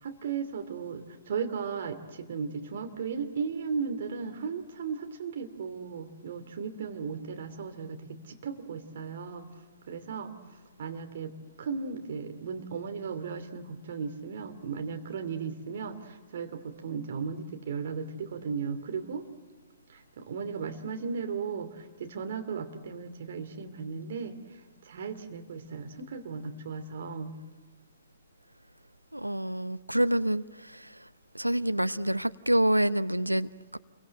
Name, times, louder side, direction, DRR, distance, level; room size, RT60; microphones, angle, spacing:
voice 1, 0.0-9.5 9.9-10.4 10.8-11.3 11.6-19.2 19.9-24.4 24.8-27.3, right 5 dB, 50° right, 2.8 m, -36 dB
voice 2, 29.1-30.4 31.3-33.8, right 1 dB, 85° right, 0.7 m, -27 dB
28.5 x 24.0 x 7.9 m
figure-of-eight pair, 115°, 0 cm